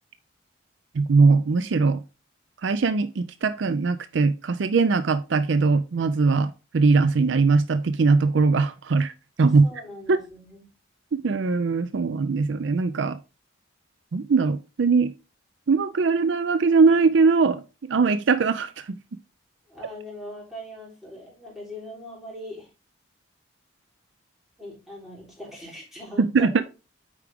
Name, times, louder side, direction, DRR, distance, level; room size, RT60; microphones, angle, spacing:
voice 1, 0.9-2.0 2.6-9.1 9.4-9.7 10.1-10.2 11.1-13.2 14.1-15.1 15.7-17.6 17.9-19.0 26.2-26.6, right 4 dB, 60° right, 0.5 m, -21 dB
voice 2, 9.4-10.7 19.7-22.7 24.6-26.5, left 1 dB, ahead, 3.5 m, -41 dB
8.4 x 4.8 x 3.5 m
head